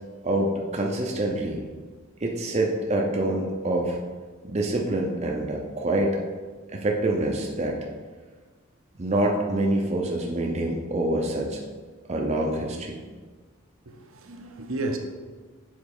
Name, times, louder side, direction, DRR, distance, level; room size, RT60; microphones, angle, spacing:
voice 1, 0.2-1.6 2.2-4.0 4.4-6.2 6.7-7.8 9.0-11.6 12.1-13.0, right 1 dB, 30° right, 0.6 m, -26 dB
voice 2, 13.9-15.0, right 2 dB, 70° right, 0.8 m, -32 dB
7.3 x 4.0 x 4.9 m
head